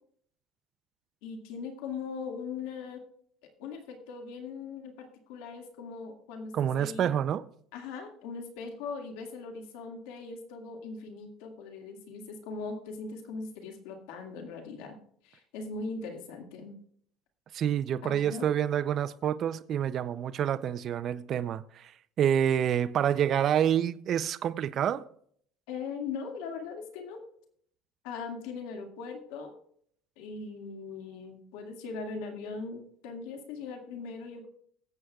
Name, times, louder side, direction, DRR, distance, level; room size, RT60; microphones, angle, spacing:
voice 1, 1.2-3.0 3.6-7.1 7.7-15.0 15.2-16.8 18.0-18.5 25.7-27.2 28.0-29.6 30.2-34.5, left 4 dB, 85° left, 2.0 m, -40 dB
voice 2, 6.5-7.4 17.5-21.9 22.2-25.0, right 9 dB, 40° right, 0.5 m, -28 dB
23.5 x 7.8 x 2.4 m
cardioid pair, 135°, 0 cm